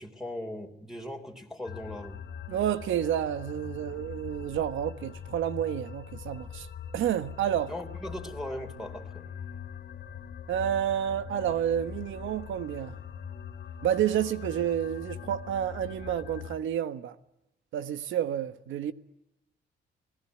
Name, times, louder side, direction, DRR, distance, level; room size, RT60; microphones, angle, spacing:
voice 1, 0.0-2.2 7.7-9.2, left 1 dB, ahead, 3.5 m, -39 dB
sound 1, 1.6-16.6, left 7 dB, 55° left, 1.7 m, -42 dB
voice 2, 2.5-6.7 6.9-7.7 10.5-13.0 13.8-17.1 17.7-18.9, right 10 dB, 75° right, 1.4 m, -29 dB
29.5 x 18.0 x 9.4 m
cardioid pair, 90°, 20 cm